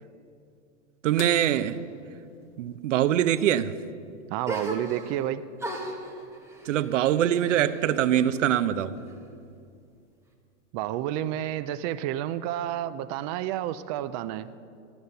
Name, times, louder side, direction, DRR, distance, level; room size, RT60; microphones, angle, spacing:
voice 1, 1.0-1.8 2.6-3.7 6.7-8.9, right 11 dB, 85° right, 14 dB, 0.8 m, -23 dB
sound 1, 1.2-3.6 5.6-5.7 7.9-8.0 9.7-10.0 10.8-10.9, left 8 dB, 45° left, 1.2 m, -46 dB
voice 2, 4.3-5.4 10.7-14.5, right 12 dB, 35° right, 13 dB, 0.4 m, -30 dB
sound 2, 4.4-5.3 5.6-8.3 8.6-9.5, right 1 dB, 5° right, 1.6 m, -38 dB
14.5 x 11.5 x 6.8 m, 2.4 s
supercardioid pair, 150°, 36 cm